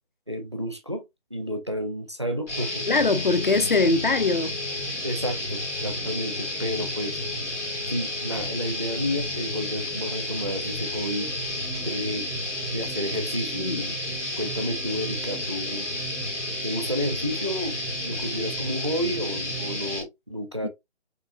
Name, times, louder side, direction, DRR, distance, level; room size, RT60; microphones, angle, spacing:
voice 1, 0.3-1.0 1.3-2.8 5.0-7.2 7.9-11.3 11.7-12.3 12.7-14.0 14.4-15.9 16.6-20.7, equal, 25° right, 0.5 m, -31 dB
sound 1, 2.5-20.0, left 1 dB, 85° left, 2.7 m, -31 dB
voice 2, 2.9-4.6 13.5-13.9 20.6-20.7, left 3 dB, 45° left, 0.5 m, -22 dB
6.2 x 2.6 x 2.6 m
figure-of-eight pair, 155°, 35 cm